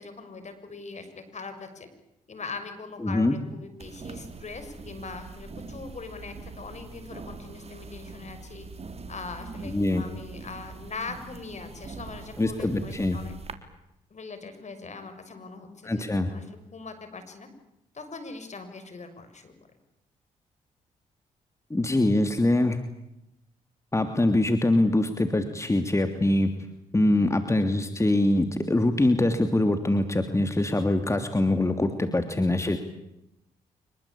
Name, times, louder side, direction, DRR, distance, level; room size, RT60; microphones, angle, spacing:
voice 1, 0.0-1.9 2.3-8.7 9.1-13.3 14.1-17.5 17.9-19.5, left 4 dB, 50° left, 9 dB, 6.5 m, -41 dB
voice 2, 3.0-3.4 9.6-10.0 12.4-13.2 15.8-16.3 21.7-22.8 23.9-26.5 26.9-32.8, left 1 dB, 20° left, 8 dB, 2.9 m, -23 dB
sound 1, 3.8-13.5, right 4 dB, 40° right, 3.6 m, -43 dB
25.5 x 23.0 x 8.8 m, 0.86 s
supercardioid pair, 50°, 16 cm